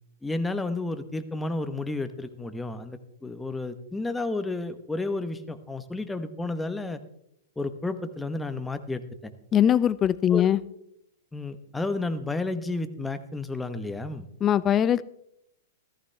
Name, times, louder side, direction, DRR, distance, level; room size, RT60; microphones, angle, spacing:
voice 1, 0.2-7.0 7.6-9.3 10.3-10.5 11.3-14.2, left 2 dB, 10° left, 10 dB, 1.0 m, -31 dB
voice 2, 9.5-10.6 14.4-15.0, left 10 dB, 25° left, 17 dB, 0.5 m, -21 dB
14.5 x 14.0 x 3.3 m, 0.76 s
hypercardioid pair, 115°, 0 cm